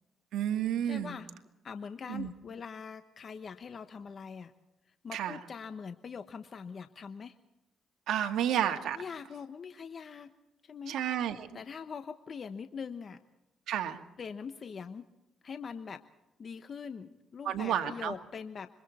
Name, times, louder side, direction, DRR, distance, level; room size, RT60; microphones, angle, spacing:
voice 1, 0.3-1.2 2.1-2.3 5.1-5.4 8.1-9.0 10.9-11.5 13.7-14.0 17.4-18.2, right 10 dB, 80° right, 5 dB, 2.0 m, -31 dB
voice 2, 0.8-1.3 1.6-4.5 5.0-7.3 8.9-10.3 10.6-11.0 11.5-13.2 14.2-15.0 15.4-16.0 16.4-18.7, left 6 dB, 45° left, 9 dB, 1.1 m, -42 dB
26.5 x 24.0 x 4.3 m, 0.96 s
cardioid pair, 90°, 0 cm